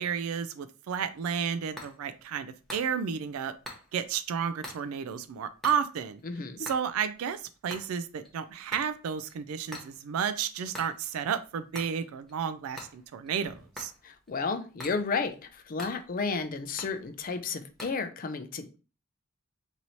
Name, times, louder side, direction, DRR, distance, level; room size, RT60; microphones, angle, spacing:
voice 1, 0.0-3.5 3.9-6.2 6.6-13.9, right 7 dB, 85° right, 0.3 m, -32 dB
sound 1, 0.9-18.0, left 1 dB, ahead, 0.8 m, -48 dB
voice 2, 6.3-6.6 14.0-18.8, left 4 dB, 40° left, 0.4 m, -32 dB
3.0 x 2.7 x 4.1 m
head